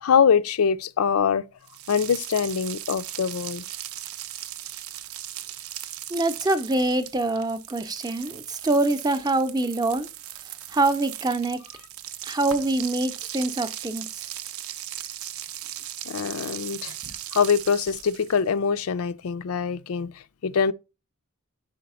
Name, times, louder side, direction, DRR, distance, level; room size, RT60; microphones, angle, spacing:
voice 1, 0.0-1.4 1.9-3.6 16.1-16.9 17.3-20.7, left 6 dB, 85° left, 0.4 m, -23 dB
sound 1, 1.7-18.5, right 12 dB, 85° right, 0.6 m, -38 dB
voice 2, 6.1-10.1 10.7-11.6 12.2-14.3 17.0-17.1, right 2 dB, 20° right, 0.5 m, -25 dB
5.1 x 4.7 x 5.4 m
head